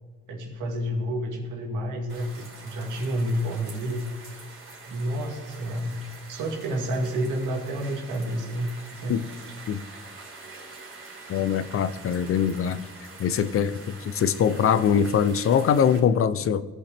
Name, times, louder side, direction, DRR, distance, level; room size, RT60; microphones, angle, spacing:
voice 1, 0.3-4.0 4.9-6.0 6.3-9.2, equal, 85° right, 2.1 m, -29 dB
sound 1, 2.1-16.0, right 3 dB, 45° right, 2.6 m, -45 dB
voice 2, 11.3-12.8 13.2-16.7, left 8 dB, 50° left, 0.5 m, -23 dB
16.5 x 5.6 x 3.4 m
cardioid pair, 90°, 30 cm